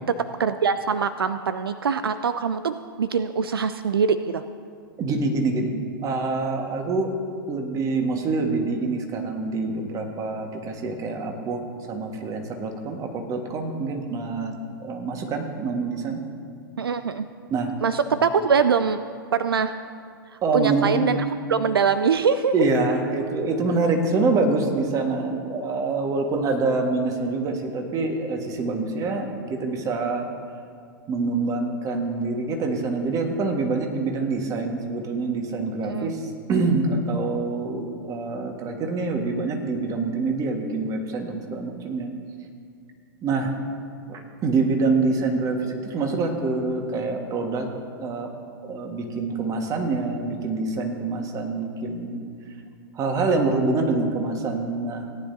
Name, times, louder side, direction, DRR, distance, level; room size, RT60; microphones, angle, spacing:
voice 1, 0.1-4.4 16.8-17.3 17.8-19.0 19.3-19.7 20.5-21.2 21.5-22.5 35.8-36.1, right 6 dB, 80° right, 11 dB, 0.4 m, -23 dB
voice 2, 5.0-5.7 6.0-7.1 7.5-11.6 11.9-14.5 14.8-16.2 17.5-17.7 20.4-21.0 22.5-30.3 31.1-42.1 43.2-43.5 44.1-47.7 48.0-48.3 48.6-52.2 52.9-55.1, right 3 dB, 30° right, 3 dB, 1.5 m, -25 dB
17.5 x 10.0 x 2.7 m, 2.2 s
figure-of-eight pair, 100°, 12 cm